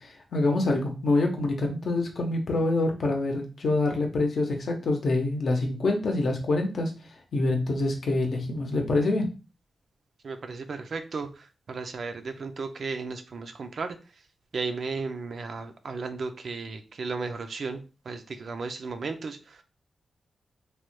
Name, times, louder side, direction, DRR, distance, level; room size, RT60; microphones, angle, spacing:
voice 1, 0.0-9.2, left 2 dB, 65° left, 3 dB, 0.7 m, -26 dB
voice 2, 10.2-14.2 14.5-19.6, right 4 dB, 60° right, 7 dB, 0.3 m, -35 dB
3.1 x 2.1 x 3.0 m, 0.32 s
wide cardioid pair, 115°, 0 cm